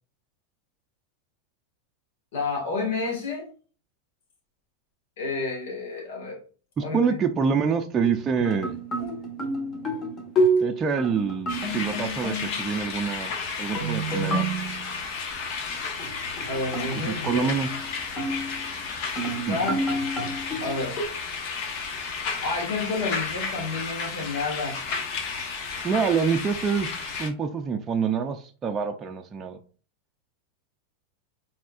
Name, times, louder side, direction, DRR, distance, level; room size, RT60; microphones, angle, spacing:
voice 1, 2.3-3.5 5.2-6.4 6.8-7.2 9.0-9.3 16.5-17.5 19.3-19.8 20.6-21.1 22.4-24.8, left 3 dB, 75° left, 1.6 m, -30 dB
voice 2, 6.8-8.8 10.6-13.3 13.6-14.5 17.1-17.8 19.5-19.6 25.8-26.9 27.2-29.6, right 6 dB, 25° right, 0.4 m, -26 dB
sound 1, 8.0-12.8 13.7-14.9 16.0-18.7 19.2-21.0, right 1 dB, 30° left, 1.4 m, -29 dB
sound 2, 11.5-27.3, left 5 dB, 55° left, 1.1 m, -33 dB
4.5 x 3.6 x 2.4 m
supercardioid pair, 130°, 0 cm